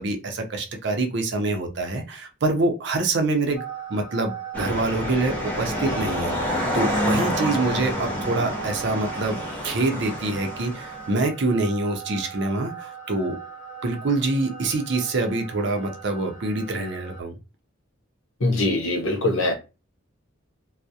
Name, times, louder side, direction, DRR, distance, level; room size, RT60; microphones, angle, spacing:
voice 1, 0.0-3.6 3.9-9.4 9.6-13.4 13.8-17.4, right 2 dB, 60° right, 0.5 m, -25 dB
sound 1, 3.5-17.2, right 7 dB, 45° left, 0.9 m, -39 dB
sound 2, 4.5-11.2, left 1 dB, 10° left, 0.6 m, -28 dB
voice 2, 18.4-19.5, left 2 dB, 75° left, 0.7 m, -22 dB
2.3 x 2.0 x 2.6 m
head